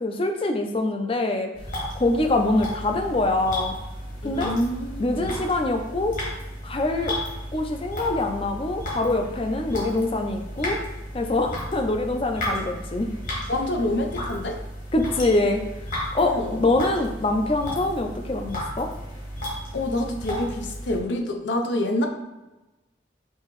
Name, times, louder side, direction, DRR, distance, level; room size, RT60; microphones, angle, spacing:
voice 1, 0.0-1.5 2.0-3.7 4.2-4.5 5.0-6.2 6.6-7.2 7.5-10.8 11.1-13.1 14.9-15.6 16.1-18.9, left 2 dB, 30° left, 5 dB, 0.4 m, -24 dB
sound 1, 1.5-21.0, equal, 45° left, 1.3 m, -34 dB
voice 2, 4.2-5.3 12.6-12.8 13.5-14.6 16.2-16.7 19.7-22.1, left 1 dB, 85° left, 3 dB, 0.6 m, -27 dB
5.5 x 2.8 x 3.0 m, 1.1 s
head